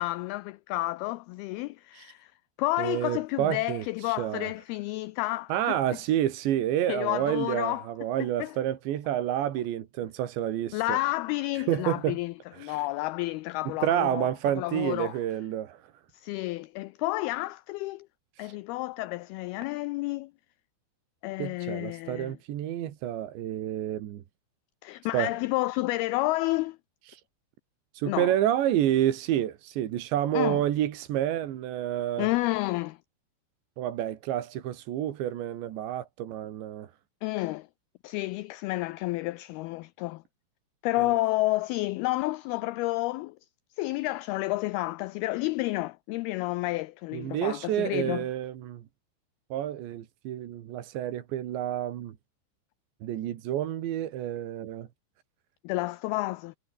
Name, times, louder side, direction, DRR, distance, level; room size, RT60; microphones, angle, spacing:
voice 1, 0.0-2.3 2.6-5.8 6.9-7.9 8.4-8.5 10.7-15.2 16.1-18.1 18.4-20.3 21.2-22.4 24.8-26.8 28.1-28.3 30.3-30.6 32.2-33.0 37.2-37.7 38.0-40.2 40.8-43.4 43.8-48.3 55.6-56.6, left 19 dB, 90° left, 2.2 m, -30 dB
voice 2, 2.8-4.5 5.5-11.0 11.6-12.2 12.5-12.9 13.7-15.9 18.4-18.6 21.4-24.2 25.1-25.3 27.1-27.2 27.9-32.3 33.8-36.9 41.0-41.2 47.1-48.8 49.5-52.2 53.0-54.9, right 11 dB, 85° right, 4.2 m, -29 dB
omnidirectional pair, 5.0 m